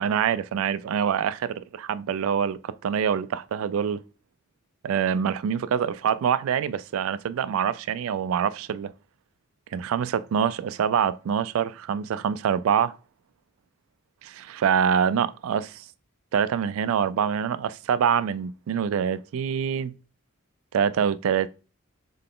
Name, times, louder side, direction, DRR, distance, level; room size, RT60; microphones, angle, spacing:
voice 1, 0.0-4.0 4.8-8.9 9.7-13.0 14.2-15.8 16.3-19.9 20.7-21.5, right 7 dB, 70° right, 0.3 m, -25 dB
3.8 x 3.2 x 3.7 m
head